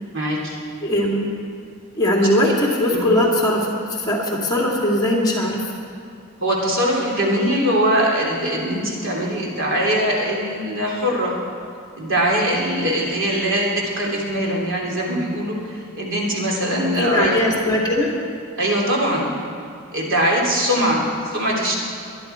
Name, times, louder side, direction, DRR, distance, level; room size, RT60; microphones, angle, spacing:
voice 1, 0.1-0.6 2.4-2.5 2.9-3.1 6.4-11.4 11.9-17.4 18.6-19.3 19.9-21.7, equal, 65° right, -2 dB, 3.1 m, -22 dB
voice 2, 0.8-1.3 2.0-5.6 16.9-18.1, left 1 dB, 20° left, -3 dB, 2.5 m, -20 dB
23.0 x 11.0 x 4.5 m, 2.5 s
head